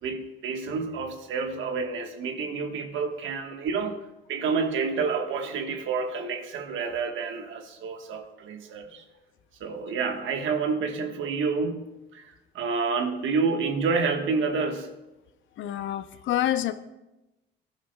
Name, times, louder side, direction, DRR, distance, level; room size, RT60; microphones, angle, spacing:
voice 1, 0.0-4.0 4.3-9.0 9.6-14.9, right 4 dB, 75° right, 5 dB, 1.4 m, -29 dB
voice 2, 15.6-16.7, left 12 dB, 75° left, 12 dB, 0.6 m, -27 dB
18.5 x 11.0 x 2.3 m, 0.98 s
cardioid pair, 90°, 20 cm